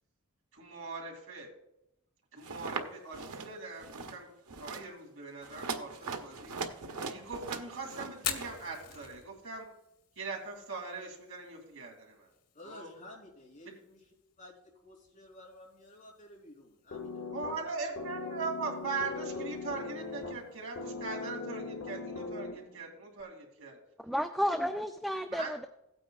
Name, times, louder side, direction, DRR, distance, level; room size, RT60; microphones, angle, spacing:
voice 1, 0.5-1.5 2.3-4.3 4.6-6.5 7.1-9.7 10.2-12.3 12.6-12.9 13.6-13.7 17.3-23.8 25.3-25.5, right 4 dB, 65° right, 0 dB, 2.7 m, -40 dB
sound 1, 2.4-2.8 3.1-3.5 3.8-4.2 4.5-4.8 5.4-8.6, right 4 dB, 90° right, 1.0 m, -40 dB
Fire, 8.1-22.0, left 9 dB, 90° left, 1.4 m, -48 dB
voice 2, 12.5-14.1 14.4-17.9, left 2 dB, 35° left, -3 dB, 3.4 m, -53 dB
sound 2, 16.9-22.9, left 3 dB, 55° left, 0.8 m, -40 dB
voice 3, 24.0-25.6, equal, ahead, 6 dB, 0.3 m, -32 dB
16.5 x 8.9 x 2.4 m, 0.86 s
head